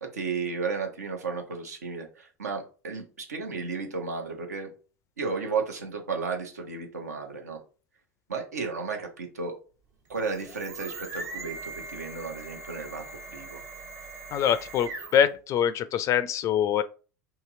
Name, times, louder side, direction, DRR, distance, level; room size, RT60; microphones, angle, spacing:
voice 1, 0.0-4.7 5.2-7.6 8.3-9.5 10.1-13.6, right 4 dB, 80° right, 0.9 m, -33 dB
sound 1, 10.1-15.4, right 3 dB, 65° right, 1.3 m, -41 dB
voice 2, 14.3-16.8, left 9 dB, 35° left, 0.3 m, -24 dB
2.9 x 2.9 x 3.6 m
figure-of-eight pair, 85°, 9 cm